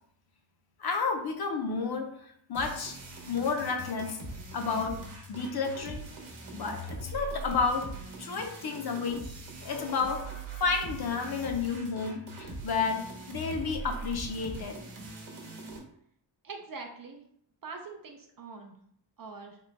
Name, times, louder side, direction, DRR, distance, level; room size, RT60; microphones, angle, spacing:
voice 1, 0.8-3.0 3.3-4.2 4.5-5.0 5.3-6.0 6.5-7.9 8.2-9.2 9.6-14.8, left 5 dB, 55° left, 4 dB, 0.6 m, -31 dB
sound 1, 2.5-15.8, right 2 dB, 85° right, 1.0 m, -42 dB
voice 2, 16.4-17.2 17.6-18.8 19.2-19.6, right 4 dB, 50° right, 3 dB, 0.5 m, -43 dB
3.7 x 2.1 x 3.9 m, 0.66 s
wide cardioid pair, 155°, 46 cm